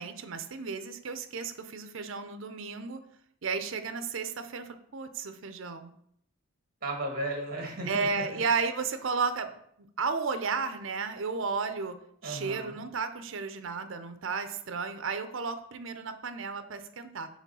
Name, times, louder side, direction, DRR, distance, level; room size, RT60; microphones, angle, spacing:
voice 1, 0.0-3.0 3.4-5.9 7.9-9.5 10.0-12.0 12.2-17.3, right 5 dB, 60° right, 9 dB, 0.6 m, -33 dB
voice 2, 6.8-8.4 12.2-12.8, right 1 dB, 45° right, 1 dB, 1.7 m, -35 dB
4.9 x 3.6 x 5.5 m, 0.70 s
head